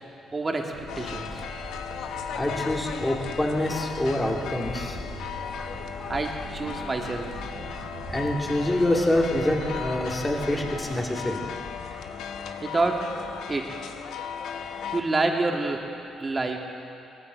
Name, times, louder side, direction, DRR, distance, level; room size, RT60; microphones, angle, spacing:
voice 1, 0.3-1.4 6.1-7.3 12.6-13.1 13.5-13.8 14.9-15.9 16.2-16.6, right 3 dB, 30° right, 2 dB, 2.1 m, -27 dB
sound 1, 0.7-10.8, right 2 dB, 75° right, 3.0 m, -42 dB
sound 2, 0.9-15.0, left 7 dB, 75° left, 0.7 m, -36 dB
voice 2, 2.3-5.3 5.6-5.7 8.1-11.5 11.9-12.0 12.4-12.5, left 1 dB, 15° left, 0 dB, 2.8 m, -26 dB
18.5 x 15.0 x 4.6 m, 2.7 s
hypercardioid pair, 50°, 0 cm